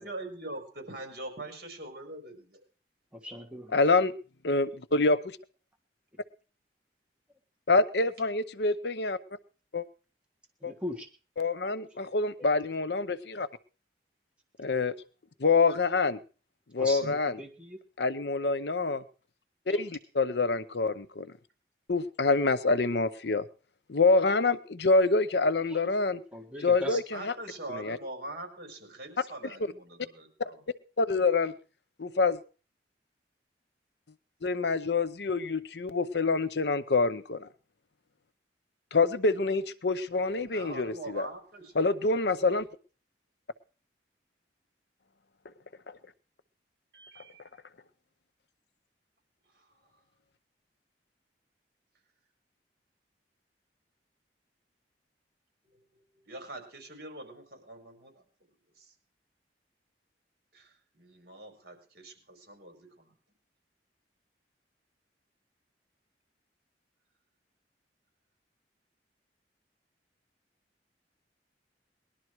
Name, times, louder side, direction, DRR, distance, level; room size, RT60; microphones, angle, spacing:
voice 1, 0.0-2.6 27.1-30.6 40.4-41.9 46.9-47.4 49.5-49.7 55.6-58.2 58.8-58.9 60.5-63.1, right 2 dB, 60° right, 5 dB, 4.7 m, -43 dB
voice 2, 3.1-3.8 10.6-11.1 11.6-11.7 12.0-12.1 12.4-12.5 16.8-17.8 19.7-19.9 25.6-25.8 26.3-27.0, left 1 dB, 5° right, 2 dB, 1.5 m, -40 dB
voice 3, 3.7-4.1 4.4-5.4 7.7-9.2 9.7-9.8 10.6-10.7 11.4-13.5 14.6-14.9 15.4-16.2 16.7-17.4 18.0-19.0 19.7-21.3 21.9-23.4 23.9-26.2 26.6-27.3 27.7-28.0 31.0-31.5 32.0-32.4 34.4-37.5 38.9-41.3 41.8-42.7, left 3 dB, 70° left, 14 dB, 0.8 m, -26 dB
20.0 x 11.5 x 4.7 m, 0.39 s
head